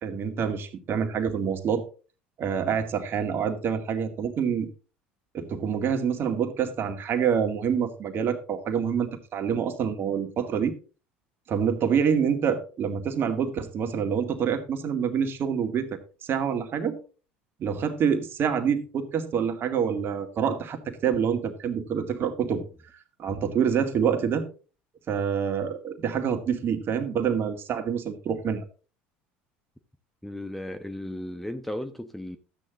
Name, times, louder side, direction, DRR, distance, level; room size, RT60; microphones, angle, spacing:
voice 1, 0.0-1.8 2.4-4.7 5.3-10.7 11.5-17.0 17.6-22.6 23.2-24.5 25.1-28.6, right 7 dB, 45° right, 2.2 m, -27 dB
voice 2, 30.2-32.4, left 1 dB, 5° left, 1.0 m, -36 dB
13.0 x 8.9 x 3.8 m
hypercardioid pair, 75°, 5 cm